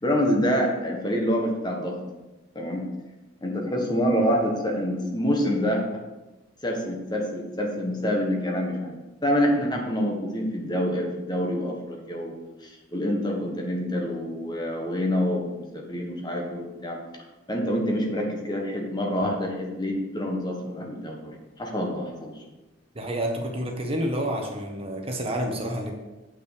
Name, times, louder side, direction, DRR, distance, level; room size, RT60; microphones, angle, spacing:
voice 1, 0.0-2.0 2.5-2.8 3.4-5.8 6.6-9.0 9.2-12.3 12.6-15.5 15.7-17.0 17.5-22.3, equal, 20° left, 1 dB, 1.3 m, -26 dB
voice 2, 22.9-25.9, equal, 30° right, 1 dB, 1.2 m, -29 dB
8.9 x 5.6 x 5.1 m, 1.1 s
head